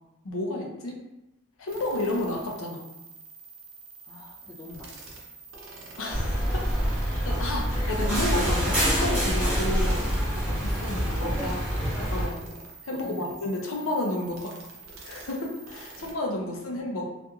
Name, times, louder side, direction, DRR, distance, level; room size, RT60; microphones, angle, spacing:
voice 1, 0.2-1.0 1.6-2.8 6.0-6.7 7.0-12.4 12.8-14.5 15.0-17.1, left 1 dB, 80° left, 0 dB, 0.5 m, -31 dB
sound 1, 1.7-16.1, right 3 dB, 70° right, 0.6 m, -46 dB
voice 2, 4.0-5.1 6.8-7.0 7.3-7.9 12.9-13.4 16.3-16.5, left 2 dB, 20° left, -5 dB, 0.4 m, -46 dB
sound 2, 6.1-12.3, equal, 10° right, 0.7 m, -26 dB
2.9 x 2.4 x 2.3 m, 0.94 s
head